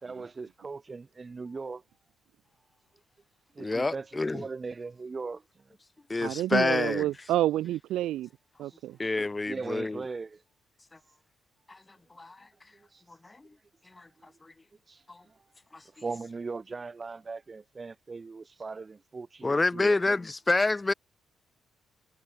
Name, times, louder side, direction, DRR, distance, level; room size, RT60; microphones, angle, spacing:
voice 1, 0.0-1.8 3.6-4.1 4.3-5.4 8.7-8.8 9.5-10.4 12.9-13.0 14.9-15.0 16.0-20.0, right 4 dB, 30° right, 1.8 m, -39 dB
voice 2, 3.6-4.5 6.1-7.1 9.0-10.1 11.7-11.8 12.2-12.4 13.2-13.4 14.0-14.1 15.1-15.2 19.4-20.9, left 3 dB, 20° left, 0.6 m, -27 dB
voice 3, 6.2-8.3 8.6-9.0, right 14 dB, 85° right, 2.7 m, -29 dB
cardioid pair, 90°, 0 cm